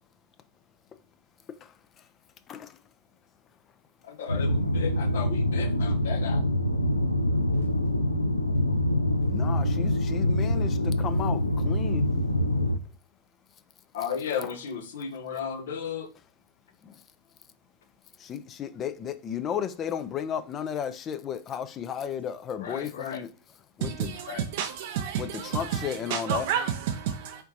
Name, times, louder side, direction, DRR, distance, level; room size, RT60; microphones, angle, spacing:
voice 1, 1.5-2.1 2.5-2.8 9.3-12.1 14.4-14.5 16.8-17.0 18.2-23.3 23.8-24.1 25.2-26.5, left 8 dB, 30° left, 0.4 m, -34 dB
voice 2, 4.0-6.4 13.9-16.1 22.6-23.2 24.3-24.4, left 7 dB, 60° left, 0.8 m, -34 dB
sound 1, 4.3-12.8, left 1 dB, 85° left, 0.4 m, -25 dB
voice 3, 23.8-27.4, right 8 dB, 50° right, 0.4 m, -30 dB
4.3 x 3.9 x 2.7 m
figure-of-eight pair, 90°, 0 cm